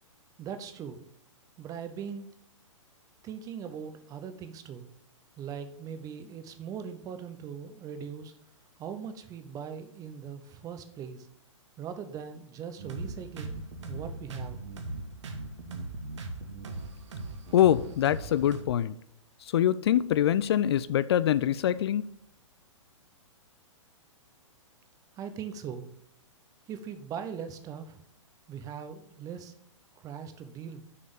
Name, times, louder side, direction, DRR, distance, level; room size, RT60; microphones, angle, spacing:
voice 1, 0.4-1.0 1.6-2.3 3.2-4.9 5.4-8.3 8.8-11.3 11.8-14.6 25.2-25.9 26.7-28.0 28.5-29.5 30.0-30.8, right 7 dB, 20° right, 9 dB, 0.8 m, -40 dB
sound 1, 12.8-18.6, right 2 dB, 60° right, 1.4 m, -39 dB
voice 2, 17.5-19.0 19.5-22.0, left 11 dB, 55° left, 17 dB, 0.4 m, -24 dB
6.7 x 5.3 x 6.8 m, 0.72 s
figure-of-eight pair, 115°, 17 cm